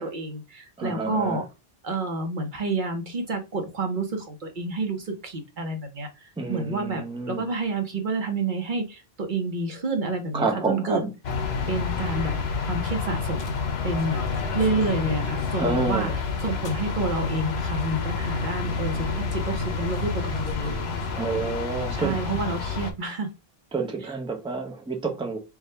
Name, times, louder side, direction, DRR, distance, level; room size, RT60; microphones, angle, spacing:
voice 1, 0.0-1.4 1.8-6.1 6.5-11.0 11.7-12.3 12.6-13.5 13.8-16.1 16.4-20.9 21.9-23.3, right 3 dB, 55° right, 1.0 m, -29 dB
voice 2, 0.8-1.4 6.4-7.4 10.3-11.1 15.6-16.2 19.8-19.9 21.1-22.2 23.7-25.4, right 3 dB, 5° right, 0.6 m, -29 dB
sound 1, 11.2-22.9, left 4 dB, 85° left, 1.0 m, -29 dB
3.6 x 2.3 x 4.2 m
omnidirectional pair, 1.0 m